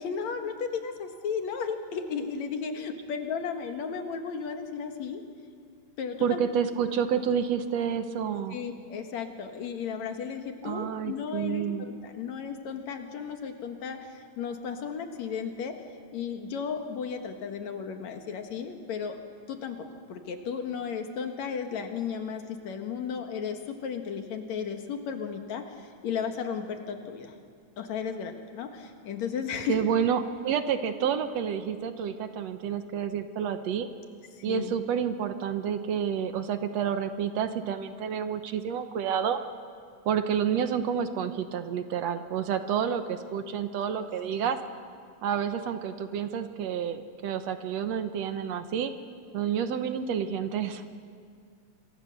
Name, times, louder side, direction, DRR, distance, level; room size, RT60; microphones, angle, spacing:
voice 1, 0.0-5.2 6.0-6.4 8.5-15.8 16.1-19.2 19.5-27.3 27.8-29.8 34.3-34.7, left 6 dB, 70° left, 5 dB, 2.8 m, -34 dB
voice 2, 6.2-8.6 10.6-11.9 29.7-33.9 34.4-39.4 40.1-44.6 45.2-48.9 49.3-50.9, right 8 dB, 70° right, 9 dB, 2.0 m, -29 dB
27.0 x 23.5 x 6.7 m, 2.1 s
omnidirectional pair, 3.3 m